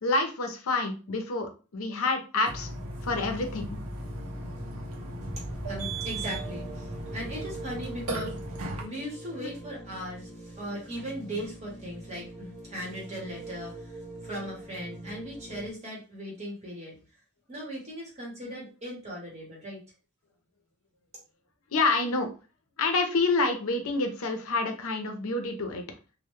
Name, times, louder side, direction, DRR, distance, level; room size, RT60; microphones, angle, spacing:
voice 1, 0.0-2.7 3.0-3.8 9.4-9.5 21.7-22.3 22.8-25.8, left 3 dB, 75° left, 5 dB, 0.5 m, -28 dB
Burping eructation, 2.5-8.8, right 1 dB, 85° right, 0.6 m, -37 dB
sound 1, 4.0-15.7, right 1 dB, ahead, 0.8 m, -43 dB
voice 2, 5.3-8.4 8.8-17.0 17.5-19.8, equal, 30° right, -3 dB, 0.9 m, -38 dB
2.2 x 2.0 x 3.0 m, 0.34 s
head